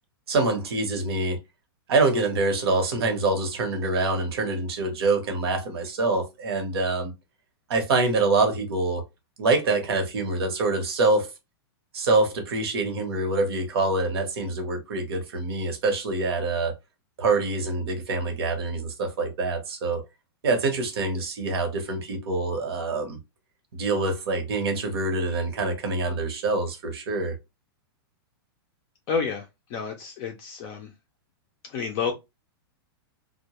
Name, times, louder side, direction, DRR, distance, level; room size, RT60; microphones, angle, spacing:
voice 1, 0.3-1.4 1.9-7.1 7.7-9.0 9.4-11.3 11.9-16.7 17.2-20.0 20.4-23.2 23.7-27.4, right 3 dB, 75° right, 1.0 m, -25 dB
voice 2, 29.1-29.4 29.7-30.9 31.7-32.1, left 5 dB, 30° left, 0.4 m, -29 dB
2.1 x 2.1 x 2.9 m
supercardioid pair, 160°, 13 cm